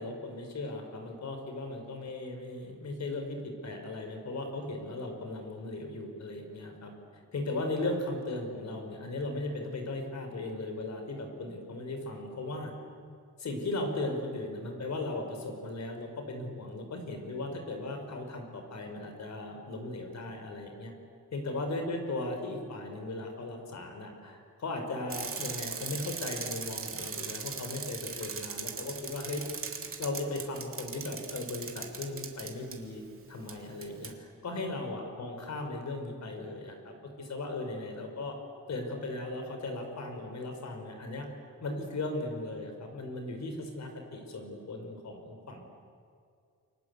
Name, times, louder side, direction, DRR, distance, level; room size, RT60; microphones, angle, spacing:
voice 1, 0.0-6.9 7.3-12.7 13.4-20.9 21.3-29.4 30.0-33.0 33.3-38.3 38.7-41.3 41.6-45.6, left 2 dB, 55° left, 5 dB, 4.9 m, -37 dB
Bicycle, 25.1-32.8 33.5-33.6 33.8-34.1, right 5 dB, 45° right, 2.6 m, -39 dB
29.0 x 24.5 x 8.3 m, 2.3 s
wide cardioid pair, 155°, 32 cm